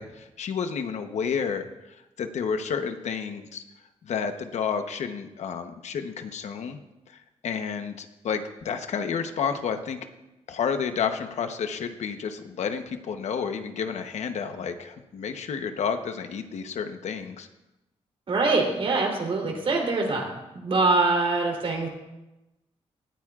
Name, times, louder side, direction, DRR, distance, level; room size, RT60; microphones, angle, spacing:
voice 1, 0.0-3.6 4.0-6.8 7.1-7.2 7.4-10.0 10.5-17.5, left 6 dB, 75° left, 7 dB, 1.0 m, -30 dB
voice 2, 18.3-20.2 20.5-21.9, right 3 dB, 50° right, 0 dB, 3.4 m, -24 dB
18.5 x 14.0 x 2.5 m, 1.0 s
wide cardioid pair, 130°, 12 cm